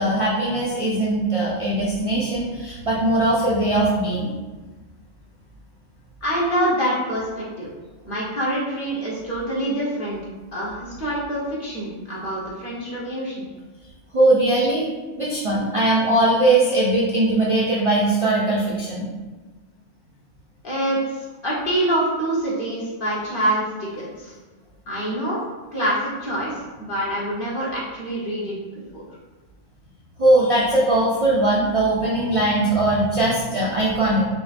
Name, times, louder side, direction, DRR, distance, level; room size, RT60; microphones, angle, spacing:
voice 1, 0.0-4.3 14.1-14.9 15.2-19.1 30.2-34.2, right 1 dB, 45° right, -5 dB, 0.4 m, -20 dB
voice 2, 6.2-7.7 8.0-10.2 10.5-13.5 20.6-24.3 24.9-25.4 25.7-26.5 26.8-28.6 28.9-29.0, right 1 dB, 45° left, -6 dB, 1.2 m, -25 dB
5.0 x 2.9 x 2.5 m, 1.3 s
omnidirectional pair, 1.3 m